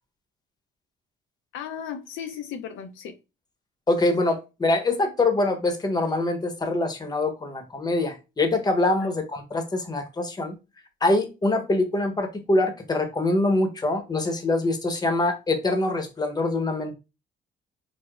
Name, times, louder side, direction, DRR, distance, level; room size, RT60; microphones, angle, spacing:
voice 1, 1.5-3.2 9.0-9.1, left 8 dB, 80° left, 0.5 m, -36 dB
voice 2, 3.9-10.5 11.0-16.9, left 2 dB, 20° left, 0.8 m, -24 dB
4.6 x 2.0 x 2.3 m
cardioid pair, 90°, 20 cm